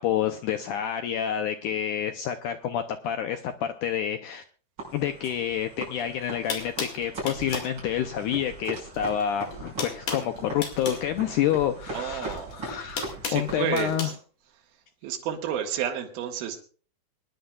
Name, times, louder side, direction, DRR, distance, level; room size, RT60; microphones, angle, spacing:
voice 1, 0.0-4.4 4.9-13.1 13.3-14.1, left 10 dB, 80° left, 7 dB, 1.8 m, -28 dB
sound 1, 4.8-14.0, right 2 dB, 30° right, 6.5 m, -40 dB
sound 2, 6.0-6.1 6.5-7.7 8.9-9.2 9.5-11.1 12.2-14.1, left 5 dB, 60° left, 3.6 m, -35 dB
voice 2, 11.9-12.7 13.2-14.1 15.0-16.6, right 9 dB, 75° right, 2 dB, 3.3 m, -31 dB
25.0 x 10.5 x 2.4 m, 0.40 s
omnidirectional pair, 4.4 m